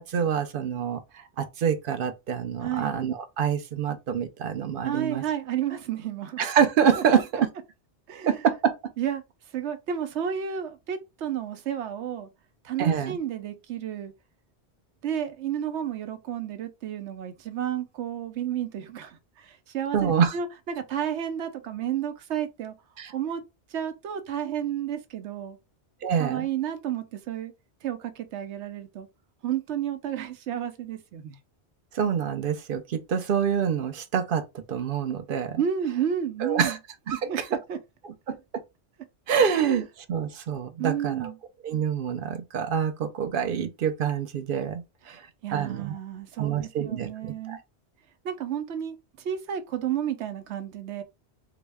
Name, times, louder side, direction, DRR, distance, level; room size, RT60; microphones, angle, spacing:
voice 1, 0.0-5.2 6.4-7.5 8.3-8.7 12.8-13.1 19.9-20.3 23.0-23.1 26.0-26.5 31.9-35.6 36.4-36.8 37.1-37.4 38.0-38.6 39.3-41.3 41.6-45.2 45.5-45.9 46.4-47.6, right 7 dB, 60° right, 0.7 m, -26 dB
voice 2, 2.6-3.0 4.8-6.4 7.0-7.1 8.1-8.4 9.0-9.2 9.5-12.3 12.6-14.1 15.0-22.7 23.1-23.4 23.7-25.6 26.2-27.5 27.8-29.1 29.4-31.4 35.6-36.8 37.1-37.8 39.6-39.8 40.8-41.4 45.4-47.6 48.2-51.0, right 9 dB, 85° right, 1.0 m, -31 dB
3.9 x 2.0 x 3.4 m
omnidirectional pair, 1.1 m